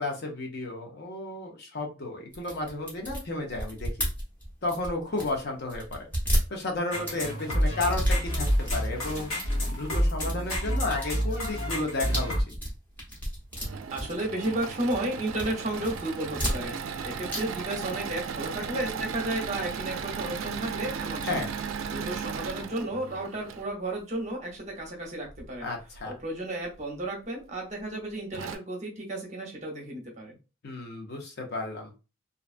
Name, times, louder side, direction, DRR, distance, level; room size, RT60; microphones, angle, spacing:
voice 1, 0.0-3.9 4.6-6.1 6.5-9.3 9.7-12.3 21.2-21.5 25.6-26.1 30.6-31.9, left 2 dB, 50° left, 2 dB, 0.6 m, -32 dB
sound 1, 2.3-5.4 5.7-7.2 7.6-8.9 9.2-9.7 10.0-14.6 14.9-15.5 15.8-17.0 17.3-17.4 17.7-17.8, equal, 10° left, 0.9 m, -32 dB
sound 2, 6.9-12.4, equal, 85° left, 0.9 m, -28 dB
Engine / Mechanisms, 13.3-23.7 25.3-26.0 26.6-26.7 27.0-27.1 27.9-28.0 28.3-28.6, right 6 dB, 75° right, 0.3 m, -36 dB
voice 2, 13.9-21.4 21.9-25.7 26.0-30.4, right 1 dB, 35° right, 0 dB, 0.7 m, -33 dB
2.6 x 2.2 x 2.4 m, 0.30 s
head